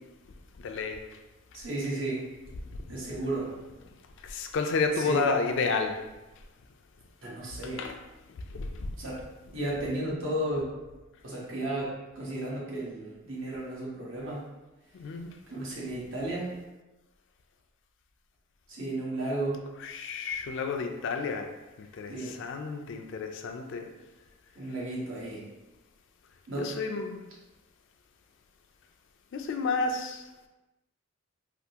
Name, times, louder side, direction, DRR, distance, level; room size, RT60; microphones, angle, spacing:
voice 1, 0.6-1.0 4.3-6.0 7.8-8.0 8.5-8.9 15.0-15.3 19.8-21.5 21.8-23.9 26.5-27.2 29.3-30.2, left 4 dB, 60° left, 4 dB, 0.3 m, -31 dB
voice 2, 1.5-2.2 2.9-3.5 5.0-5.2 7.2-7.9 9.0-9.2 9.5-10.7 11.2-14.5 15.5-16.6 18.7-19.6 22.1-22.4 24.6-25.4 26.5-26.7, right 1 dB, 65° right, -5 dB, 1.0 m, -33 dB
3.4 x 2.4 x 2.8 m, 1.1 s
head